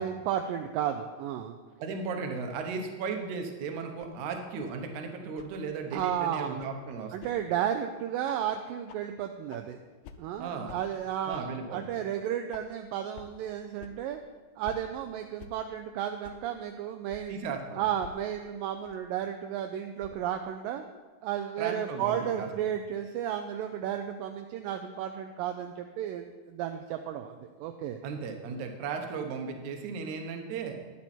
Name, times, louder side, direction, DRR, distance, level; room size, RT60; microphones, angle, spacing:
voice 1, 0.0-1.6 5.9-6.6 7.1-9.8 10.2-14.2 14.6-17.4 17.8-20.8 21.2-28.0, right 10 dB, 80° right, 6 dB, 2.1 m, -33 dB
voice 2, 1.8-7.3 10.4-10.7 11.3-11.9 17.3-17.8 21.6-22.5 28.0-30.7, right 5 dB, 65° right, 4 dB, 2.2 m, -36 dB
sound 1, 4.0-4.1 4.6-4.7 5.4-5.5 6.0-6.1 6.6-6.7 7.2-7.3 7.7-7.8 8.3-8.4 8.9-9.0 9.5-9.6 10.0-10.2 10.7-10.8 11.3-11.4 11.9-12.0 12.5-12.6 13.2-13.3 13.8-13.9 14.6-14.8 15.4-15.5 16.2-16.3 17.1-17.2 18.0-18.1 18.9-19.0 20.0-20.2, left 8 dB, 90° left, 2.4 m, -48 dB
10.5 x 10.5 x 4.3 m, 1.3 s
omnidirectional pair, 4.1 m